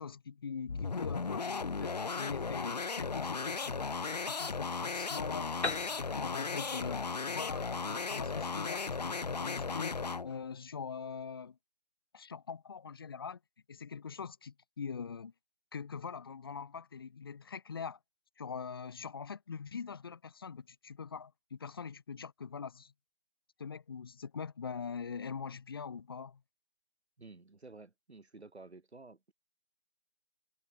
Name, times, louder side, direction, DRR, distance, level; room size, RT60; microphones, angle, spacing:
voice 1, 0.0-5.5 5.8-9.9 10.2-11.6 12.1-13.4 13.7-15.3 15.7-18.0 18.4-22.9 23.6-26.4, left 6 dB, 20° left, 1.5 m, -43 dB
sound 1, 0.7-10.3, left 4 dB, 35° left, 1.5 m, -36 dB
Piano, 5.6-9.3, left 3 dB, 75° left, 1.8 m, -42 dB
voice 2, 27.2-29.3, right 3 dB, 65° right, 4.7 m, -52 dB
open air
figure-of-eight pair, 165°, 35 cm